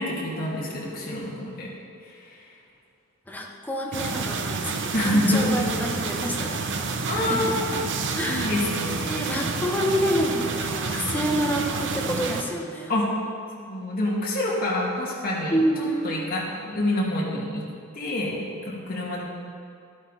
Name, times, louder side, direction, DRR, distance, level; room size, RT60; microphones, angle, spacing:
voice 1, 0.0-1.7 2.0-2.4 4.9-5.7 7.1-7.8 8.2-9.5 12.9-13.1 13.6-17.6 17.9-18.4 18.7-19.2, left 1 dB, 45° left, -5 dB, 2.6 m, -27 dB
voice 2, 3.3-6.6 7.1-7.6 8.1-8.6 9.0-12.9 15.5-16.1, equal, 10° left, 0 dB, 1.1 m, -28 dB
sound 1, 3.9-12.4, right 4 dB, 60° right, 0.8 m, -29 dB
12.0 x 11.5 x 4.2 m, 2.5 s
head